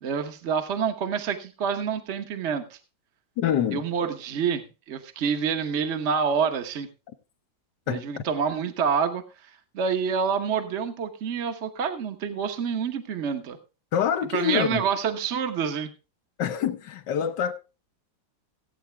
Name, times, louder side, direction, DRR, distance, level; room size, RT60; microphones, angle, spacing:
voice 1, 0.0-2.8 3.7-6.9 7.9-13.6 14.3-15.9, right 6 dB, 45° right, 1.3 m, -27 dB
voice 2, 3.4-3.8 7.9-8.2 13.9-14.9 16.4-17.5, left 8 dB, 70° left, 1.6 m, -26 dB
16.0 x 8.6 x 3.4 m
omnidirectional pair, 2.0 m